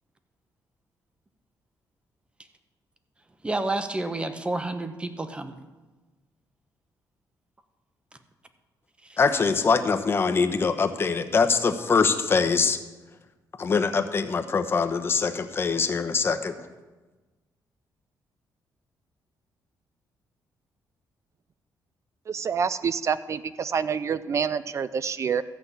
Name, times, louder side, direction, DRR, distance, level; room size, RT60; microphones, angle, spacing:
voice 1, 3.4-5.6, right 2 dB, 15° right, 9 dB, 0.9 m, -29 dB
voice 2, 9.2-12.8 13.6-16.5, left 5 dB, 30° left, 7 dB, 0.9 m, -23 dB
voice 3, 22.3-25.4, right 6 dB, 40° right, 15 dB, 0.4 m, -27 dB
13.5 x 5.7 x 8.2 m, 1.2 s
cardioid pair, 130°, 7 cm